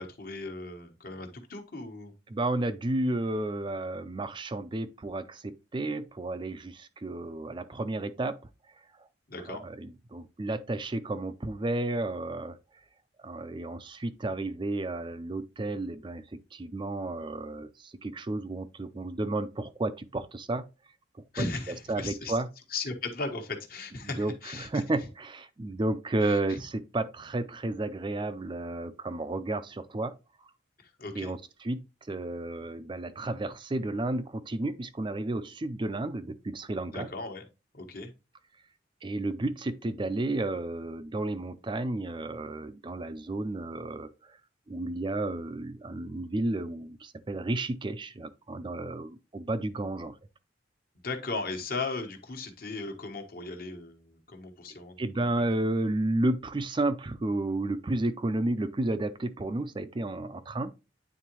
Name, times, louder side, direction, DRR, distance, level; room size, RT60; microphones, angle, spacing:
voice 1, 0.0-2.1 9.3-9.6 21.3-22.4 22.7-24.8 26.2-26.6 30.8-31.3 36.9-37.4 37.7-38.1 51.0-55.4, left 3 dB, 55° left, 1.3 m, -37 dB
voice 2, 2.3-8.4 9.0-9.1 9.5-12.6 13.2-20.7 21.4-21.5 21.9-22.5 24.0-30.2 31.1-37.1 39.0-44.4 44.7-50.1 55.0-60.7, right 2 dB, 25° right, 0.4 m, -32 dB
9.2 x 3.8 x 3.0 m
head